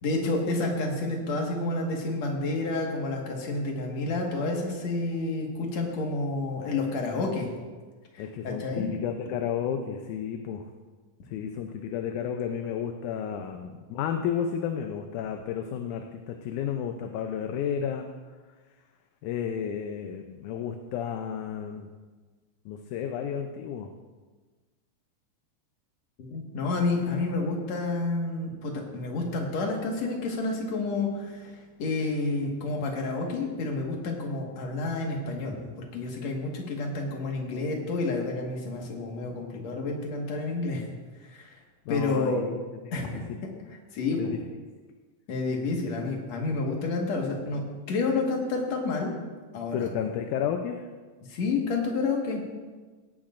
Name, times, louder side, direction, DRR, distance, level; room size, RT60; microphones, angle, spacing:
voice 1, 0.0-7.5 8.1-8.9 26.2-35.6 35.9-40.9 41.2-41.6 41.9-42.5 42.9-43.2 43.9-44.4 45.3-47.6 47.9-49.2 49.5-49.9 51.3-52.4, left 3 dB, 60° left, 0 dB, 2.7 m, -29 dB
voice 2, 8.2-10.6 11.3-18.1 19.2-21.9 22.7-23.9 41.9-42.6 43.1-43.4 44.2-44.4 49.7-50.8, left 8 dB, 80° left, 5 dB, 2.1 m, -32 dB
17.0 x 11.5 x 2.5 m, 1.4 s
omnidirectional pair, 3.6 m